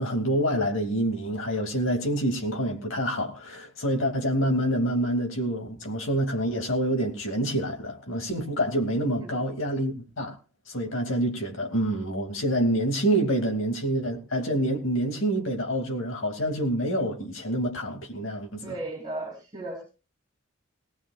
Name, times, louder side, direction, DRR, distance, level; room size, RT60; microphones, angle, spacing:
voice 1, 0.0-10.3 10.7-18.7, right 1 dB, 75° left, 2.6 m, -27 dB
voice 2, 18.6-19.8, right 2 dB, 25° right, 4.5 m, -36 dB
19.0 x 18.5 x 2.5 m
head